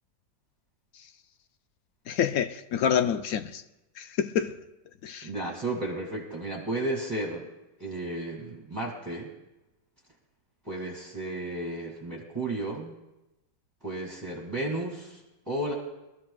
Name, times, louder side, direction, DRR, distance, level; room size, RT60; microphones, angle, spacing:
voice 1, 2.1-3.6 4.0-4.6 5.0-5.3, left 8 dB, 70° left, 0.9 m, -27 dB
voice 2, 5.2-7.5 7.8-9.3 10.7-13.0 13.8-15.2 15.5-15.7, right 2 dB, 10° right, 2.0 m, -33 dB
23.5 x 13.5 x 2.4 m
omnidirectional pair, 2.0 m